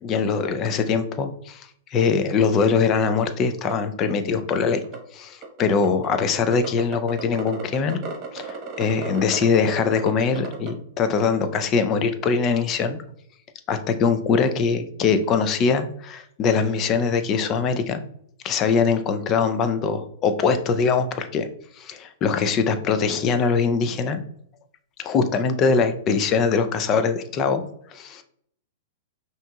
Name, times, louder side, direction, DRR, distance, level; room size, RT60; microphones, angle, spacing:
voice 1, 0.0-4.8 5.1-8.0 8.3-13.0 13.7-18.0 18.4-21.5 21.8-24.2 25.0-27.6 27.9-28.2, left 5 dB, 30° left, 9 dB, 0.5 m, -22 dB
sound 1, 3.2-3.3 3.6-3.7 4.1-4.2 4.4-5.0 5.4-6.0 6.5-10.7, right 6 dB, 35° right, 1.2 m, -34 dB
5.5 x 2.9 x 2.3 m, 0.66 s
hypercardioid pair, 135°, 0 cm